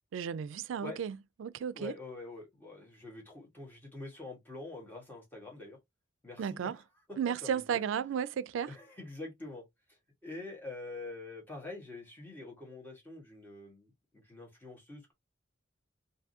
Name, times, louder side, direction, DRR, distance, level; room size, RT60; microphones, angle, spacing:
voice 1, 0.1-1.9 6.4-6.8 7.2-8.7, right 7 dB, 85° right, 0.3 m, -34 dB
voice 2, 1.7-5.8 6.2-6.8 7.3-8.2 8.7-9.6 9.9-15.1, left 2 dB, 10° left, 1.5 m, -46 dB
3.6 x 2.6 x 2.6 m
head